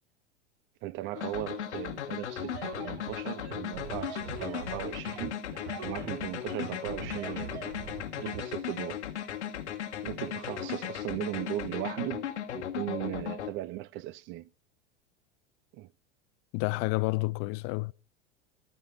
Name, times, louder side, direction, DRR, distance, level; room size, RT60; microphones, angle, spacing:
voice 1, 0.8-5.5 5.8-7.6 8.2-9.0 10.0-12.3 12.5-14.5 15.7-15.9, right 15 dB, 35° right, 0.4 m, -37 dB
sound 1, 1.2-13.5, left 10 dB, 75° left, 1.3 m, -37 dB
sound 2, 2.4-8.4, right 6 dB, 70° right, 1.7 m, -42 dB
voice 2, 16.5-17.9, left 25 dB, 40° left, 0.4 m, -29 dB
13.5 x 5.3 x 7.9 m
hypercardioid pair, 90°, 35 cm